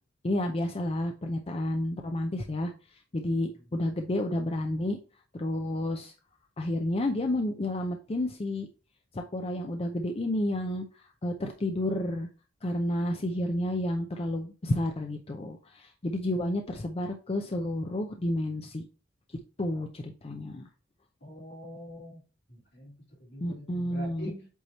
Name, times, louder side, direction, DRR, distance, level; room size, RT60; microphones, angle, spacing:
voice 1, 0.2-5.0 5.3-6.1 6.6-8.7 9.1-12.3 12.6-18.8 19.6-20.7 23.4-24.3, left 1 dB, 30° left, 0.6 m, -31 dB
voice 2, 21.2-22.2 22.5-22.9 23.2-24.5, equal, 65° left, 3.0 m, -44 dB
8.1 x 3.0 x 4.1 m
head